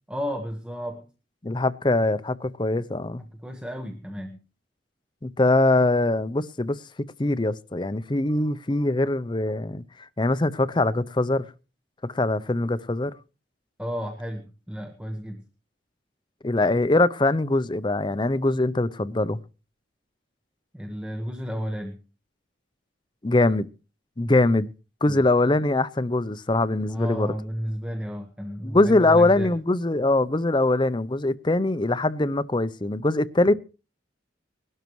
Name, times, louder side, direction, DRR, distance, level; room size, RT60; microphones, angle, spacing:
voice 1, 0.1-1.1 3.4-4.4 13.8-15.4 20.7-22.0 24.3-24.4 25.1-25.2 26.9-29.5, equal, 5° right, 1.1 m, -32 dB
voice 2, 1.4-3.2 5.2-6.8 7.2-9.8 10.2-11.4 12.0-13.1 16.4-19.4 23.2-23.7 24.2-24.7 25.0-27.3 28.6-33.5, left 2 dB, 25° left, 0.6 m, -22 dB
21.0 x 12.0 x 3.1 m
head